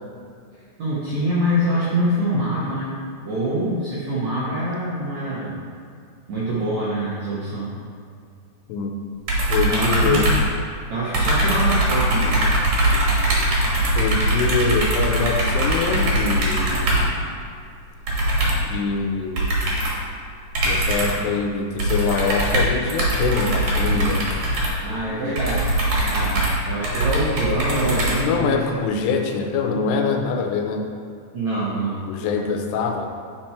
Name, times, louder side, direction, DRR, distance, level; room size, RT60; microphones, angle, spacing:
voice 1, 0.8-2.9 3.2-5.6 6.3-7.7 9.7-10.3 10.9-12.6 24.8-25.7 26.0-28.6 31.3-32.0, right 1 dB, 75° right, -8 dB, 1.6 m, -25 dB
sound 1, 9.3-10.9 11.1-17.2 18.1-18.7 19.4-20.0 20.5-21.3 21.8-28.6, right 1 dB, 55° right, 2.3 m, -21 dB
voice 2, 9.5-10.3 14.0-17.0 18.6-19.6 20.6-24.3 28.2-30.9 32.1-33.1, left 5 dB, 85° left, 3 dB, 2.7 m, -24 dB
9.5 x 4.4 x 4.3 m, 2.3 s
omnidirectional pair, 4.9 m